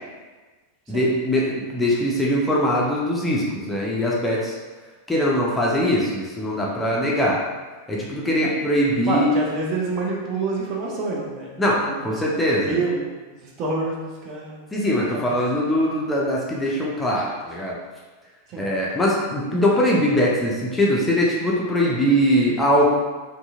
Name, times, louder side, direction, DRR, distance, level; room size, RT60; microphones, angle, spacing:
voice 1, 0.9-4.5 5.1-7.4 7.9-9.3 11.6-12.8 14.7-17.8 18.6-23.0, equal, 10° left, -4 dB, 0.5 m, -21 dB
voice 2, 9.0-11.5 11.8-14.6 15.1-15.3 18.5-18.6, right 3 dB, 35° right, -3 dB, 0.6 m, -28 dB
2.7 x 2.6 x 2.4 m, 1.3 s
figure-of-eight pair, 90°, 0 cm